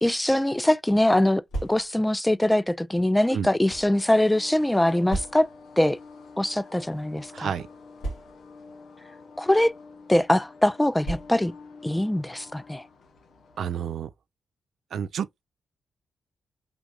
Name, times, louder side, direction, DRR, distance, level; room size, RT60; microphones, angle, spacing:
voice 1, 0.0-5.5 5.8-6.0 6.4-7.5 9.4-9.7 10.1-11.5 11.8-12.8, left 1 dB, 10° left, 0.4 m, -22 dB
sound 1, 1.5-2.2 3.0-4.0 5.1-5.7 6.6-6.7 7.0-7.1 8.0-8.7 9.5-9.8 11.0-11.7, right 2 dB, 85° left, 1.8 m, -35 dB
sound 2, 3.6-13.9, left 4 dB, 70° left, 1.1 m, -48 dB
voice 2, 7.3-7.7 13.6-14.1 14.9-15.4, right 8 dB, 75° right, 0.4 m, -30 dB
5.1 x 3.5 x 2.3 m
supercardioid pair, 50°, 0 cm